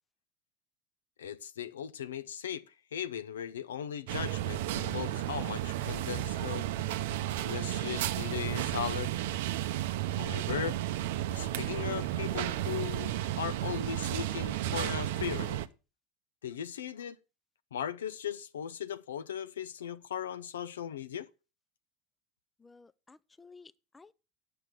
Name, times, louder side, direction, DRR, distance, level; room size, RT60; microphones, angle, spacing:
voice 1, 1.2-2.6 2.9-6.7 7.4-9.2 10.2-10.8 11.3-15.6 16.4-17.2 17.7-21.3, left 9 dB, 85° left, 0.5 m, -38 dB
sound 1, 4.1-15.7, right 13 dB, 75° right, 0.6 m, -33 dB
voice 2, 22.6-24.1, left 4 dB, 15° left, 0.5 m, -55 dB
8.7 x 6.9 x 6.0 m
hypercardioid pair, 85°, 0 cm